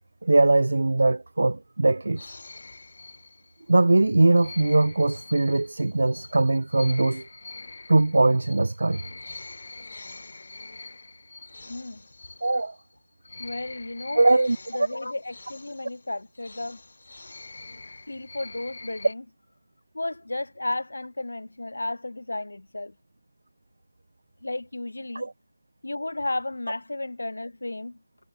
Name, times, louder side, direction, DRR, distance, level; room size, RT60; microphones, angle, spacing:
voice 1, 0.2-2.3 3.7-7.3 7.9-9.0 12.4-12.7 14.1-14.6 25.1-25.3, right 2 dB, 70° right, 1.0 m, -21 dB
sound 1, 2.2-3.7 4.3-12.9 13.2-19.1, left 3 dB, 60° left, 3.6 m, -45 dB
voice 2, 11.6-12.0 13.4-14.2 14.7-16.8 18.1-19.2 19.9-22.9 24.4-25.3 25.8-28.0, left 2 dB, 75° left, 1.8 m, -33 dB
figure-of-eight pair, 160°, 0 cm